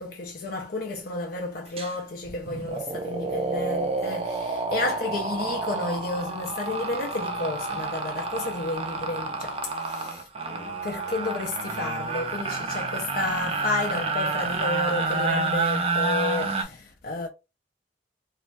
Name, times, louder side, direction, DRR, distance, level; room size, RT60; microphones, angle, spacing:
voice 1, 0.0-17.3, left 2 dB, 55° left, 0.4 m, -31 dB
sound 1, 1.8-1.9 2.2-16.6, right 3 dB, 35° right, 0.5 m, -29 dB
3.1 x 2.2 x 2.5 m
head